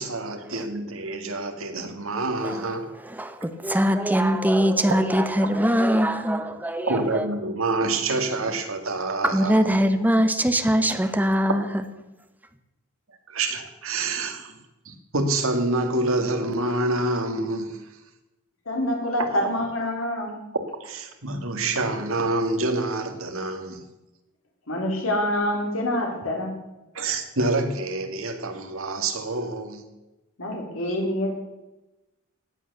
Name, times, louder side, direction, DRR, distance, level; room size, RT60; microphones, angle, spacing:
voice 1, 0.0-2.9 6.9-9.6 13.3-14.5 14.9-17.8 20.8-23.9 26.9-29.8, right 2 dB, 70° right, 2.1 m, -27 dB
voice 2, 3.0-7.3 9.2-11.6, equal, 10° right, 1.1 m, -22 dB
voice 3, 18.7-20.4 24.7-26.6 30.4-31.3, left 1 dB, 70° left, 3.7 m, -26 dB
16.5 x 9.4 x 6.8 m
head